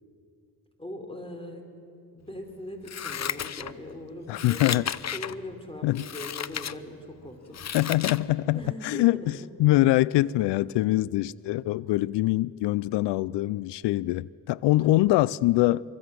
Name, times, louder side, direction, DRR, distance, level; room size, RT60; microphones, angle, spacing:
voice 1, 0.8-1.7 2.1-4.8 5.1-7.6 8.5-9.5 14.8-15.1, left 1 dB, 15° left, 4.9 m, -40 dB
Scissors, 2.8-3.9 4.3-5.4 5.9-6.7 7.2-8.2 8.6-8.7, left 9 dB, 40° left, 0.7 m, -33 dB
voice 2, 4.3-4.9 5.8-6.0 7.7-15.8, left 17 dB, 85° left, 0.5 m, -24 dB
26.0 x 24.0 x 7.6 m
cardioid pair, 70°, 40 cm